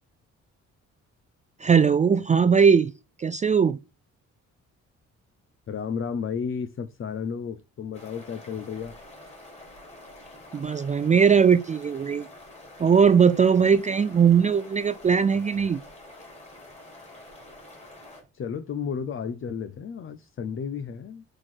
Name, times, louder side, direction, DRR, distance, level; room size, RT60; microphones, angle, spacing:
voice 1, 1.6-2.9 3.2-3.8 10.5-12.3 12.8-15.8, right 6 dB, 25° right, 0.4 m, -19 dB
voice 2, 5.7-9.0 18.3-21.2, left 6 dB, 45° left, 0.7 m, -32 dB
sound 1, 7.9-18.2, left 1 dB, 20° left, 3.7 m, -47 dB
6.5 x 4.4 x 4.3 m
cardioid pair, 90°, 30 cm